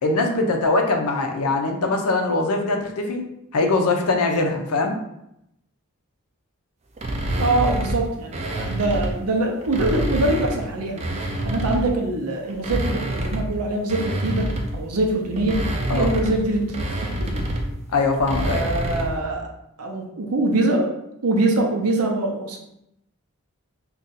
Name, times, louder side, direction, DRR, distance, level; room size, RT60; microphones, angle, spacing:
voice 1, 0.0-3.3 3.5-4.9 15.9-16.1 17.9-18.6, left 3 dB, 85° left, 3 dB, 0.5 m, -22 dB
sound 1, 7.0-9.2 9.6-12.0 12.5-19.2, right 1 dB, 30° right, 0.3 m, -27 dB
voice 2, 7.4-11.0 11.4-15.6 15.9-17.5 18.4-19.5 19.8-21.0 21.2-22.6, right 2 dB, 85° right, 2 dB, 0.6 m, -24 dB
2.6 x 2.3 x 3.9 m, 0.81 s
head